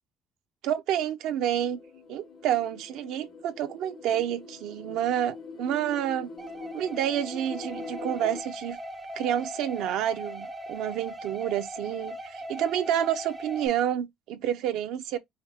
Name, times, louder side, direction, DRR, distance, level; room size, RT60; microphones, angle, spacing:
voice 1, 0.6-1.8 2.1-6.3 6.7-8.8 9.2-15.2, right 10 dB, 75° right, 0.6 m, -29 dB
sound 1, 1.3-8.4, left 3 dB, 40° left, 0.5 m, -43 dB
sound 2, 6.4-13.7, right 1 dB, 15° right, 0.5 m, -40 dB
4.9 x 2.1 x 3.3 m
cardioid pair, 160°, 0 cm